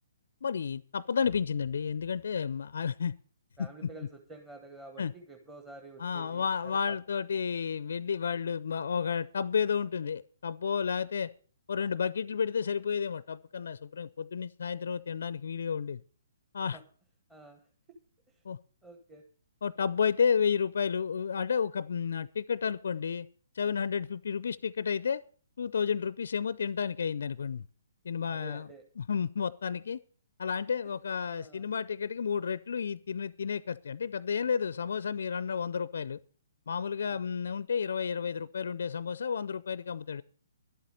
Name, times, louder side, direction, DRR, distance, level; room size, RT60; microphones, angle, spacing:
voice 1, 0.4-3.2 3.6-3.9 5.0-5.1 6.0-11.3 11.7-16.0 16.5-16.8 18.4-18.6 19.6-23.3 23.5-25.2 25.6-27.6 28.0-28.7 29.0-30.0 30.4-36.2 36.7-40.2, left 6 dB, 60° left, 18 dB, 0.5 m, -31 dB
voice 2, 3.6-6.8 16.7-16.8 17.3-17.6 18.3-18.4 18.8-19.2 28.2-28.8 31.3-31.6 37.0-37.2, right 2 dB, 10° right, 2 dB, 1.4 m, -49 dB
11.5 x 8.4 x 6.5 m, 0.43 s
figure-of-eight pair, 130°, 0 cm